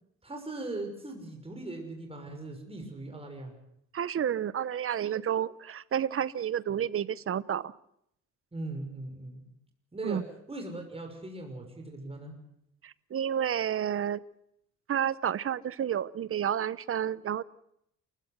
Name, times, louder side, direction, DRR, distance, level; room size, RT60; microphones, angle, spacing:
voice 1, 0.2-3.5 6.7-6.8 8.5-9.5 9.9-12.3, right 2 dB, 20° right, 3 dB, 6.2 m, -40 dB
voice 2, 3.9-7.7 10.0-10.2 12.8-14.2 14.9-17.4, right 9 dB, 45° right, 19 dB, 0.9 m, -30 dB
28.0 x 16.0 x 8.1 m, 0.76 s
cardioid pair, 90°, 30 cm